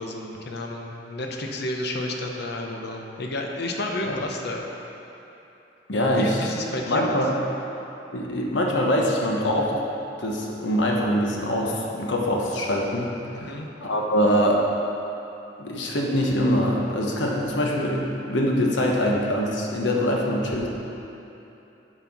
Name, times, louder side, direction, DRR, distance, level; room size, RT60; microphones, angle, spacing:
voice 1, 0.0-4.6 6.2-7.2 13.3-13.7, left 1 dB, 65° left, 1 dB, 0.8 m, -31 dB
voice 2, 5.9-6.6 6.9-7.3 8.1-9.7 10.2-13.5 13.8-14.7 15.6-20.7, equal, 85° left, -1 dB, 1.1 m, -23 dB
9.0 x 4.4 x 6.0 m, 3.0 s
head